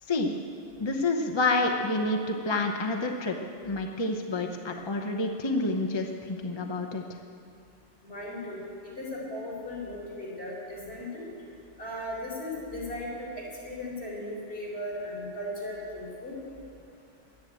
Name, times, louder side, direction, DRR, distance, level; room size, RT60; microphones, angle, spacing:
voice 1, 0.8-3.4 3.6-7.0, left 2 dB, 25° left, 3 dB, 0.7 m, -28 dB
voice 2, 8.0-8.7 9.0-11.3 11.8-16.4, left 1 dB, 55° left, -5 dB, 4.5 m, -37 dB
11.5 x 10.5 x 8.8 m, 2.5 s
omnidirectional pair, 1.3 m